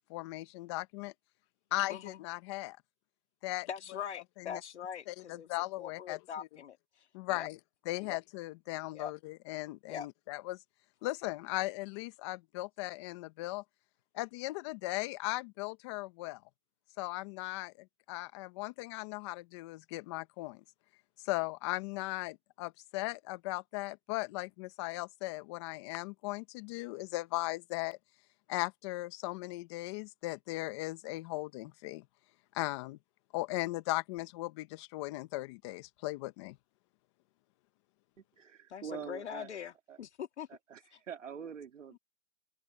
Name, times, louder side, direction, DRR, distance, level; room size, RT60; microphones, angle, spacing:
voice 1, 0.1-1.1 1.7-2.8 3.4-3.7 4.4-4.6 5.1-6.2 7.1-7.6 7.8-10.6 11.0-13.6 14.1-16.4 17.0-20.6 21.2-28.0 28.5-32.0 32.5-33.0 33.3-36.6, left 20 dB, 25° left, 1.3 m, -38 dB
voice 2, 1.9-2.2 3.7-5.5 5.8-7.5 8.1-8.2 8.9-9.1 9.9-10.1 38.7-40.5 40.9-41.0 41.9-42.0, left 8 dB, 65° left, 2.3 m, -42 dB
voice 3, 38.2-39.5 39.9-40.0 40.7-42.0, right 7 dB, 80° right, 2.6 m, -45 dB
hypercardioid pair, 160°, 37 cm